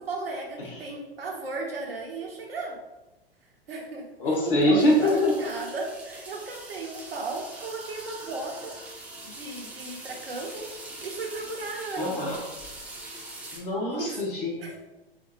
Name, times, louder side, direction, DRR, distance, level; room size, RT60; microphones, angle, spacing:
voice 1, 0.1-2.8 3.7-8.8 9.2-10.7 11.0-12.2 13.9-14.1 14.6-14.9, right 3 dB, 70° right, 0 dB, 0.9 m, -35 dB
voice 2, 4.2-5.3 12.0-12.4 13.5-14.9, left 1 dB, 60° left, -2 dB, 1.1 m, -24 dB
sound 1, 4.8-13.6, right 2 dB, 5° right, 0.7 m, -43 dB
5.0 x 2.5 x 2.9 m, 1.0 s
figure-of-eight pair, 95°, 30 cm